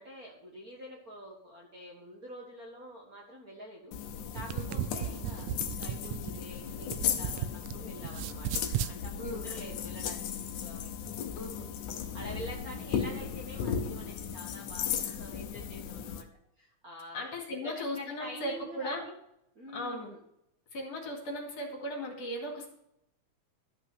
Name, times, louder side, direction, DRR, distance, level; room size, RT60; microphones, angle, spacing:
voice 1, 0.0-3.9 4.3-10.9 11.2-11.3 12.1-16.3 16.6-17.2 17.5-19.1 19.6-20.2, equal, 35° right, -2 dB, 1.6 m, -46 dB
sound 1, 3.9-16.2, left 8 dB, 85° left, 2.4 m, -36 dB
sound 2, 4.2-7.7 8.0-9.0, right 11 dB, 80° right, 1.8 m, -35 dB
voice 2, 9.2-9.5 11.3-11.7 17.1-19.0 19.7-20.1 20.7-22.7, left 1 dB, 60° left, 0 dB, 3.4 m, -37 dB
13.0 x 5.7 x 7.7 m, 0.79 s
omnidirectional pair, 3.4 m